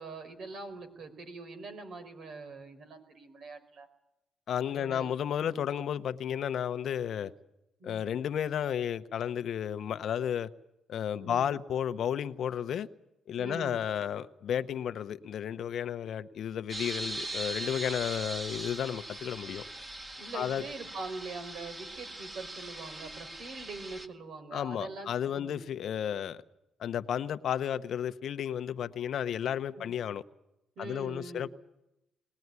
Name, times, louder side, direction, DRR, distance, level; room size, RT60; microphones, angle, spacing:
voice 1, 0.0-3.9 4.6-5.1 5.4-5.5 7.8-8.1 11.2-11.5 13.3-13.8 20.2-25.6 29.7-29.9 30.8-31.5, right 3 dB, 65° right, 4.7 m, -43 dB
voice 2, 4.5-7.3 7.8-10.5 10.9-12.9 13.3-19.6 20.3-20.6 24.5-26.4 26.8-30.2 30.8-31.5, left 9 dB, 65° left, 0.9 m, -33 dB
sound 1, 16.7-24.1, right 2 dB, 25° right, 1.9 m, -40 dB
21.5 x 18.5 x 9.6 m
cardioid pair, 90°, 0 cm